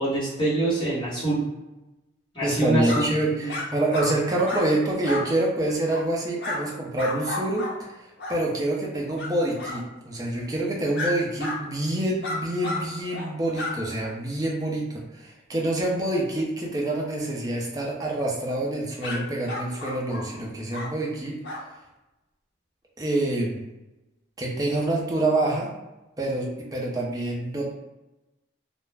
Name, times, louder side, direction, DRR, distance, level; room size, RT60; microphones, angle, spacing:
voice 1, 0.0-1.4 2.3-3.6, right 2 dB, 25° left, -10 dB, 1.1 m, -25 dB
voice 2, 2.4-14.9 15.1-21.4 23.0-23.6 24.4-25.7 26.2-27.7, right 1 dB, 20° right, -3 dB, 0.5 m, -26 dB
sound 1, 2.8-3.0 3.5-3.6 3.9-4.1 4.4-4.6 5.0-5.2 5.9-6.1 6.4-6.6 7.0-7.7 8.2-8.4 9.2-9.3 9.6-9.8 10.9-11.1 11.4-11.6 12.2-12.8 13.1-13.3 13.5-13.7 19.0-19.2 19.5-20.2 20.7-20.9 21.4-21.6, left 2 dB, 60° left, 0.5 m, -31 dB
2.3 x 2.0 x 3.2 m, 1.0 s
head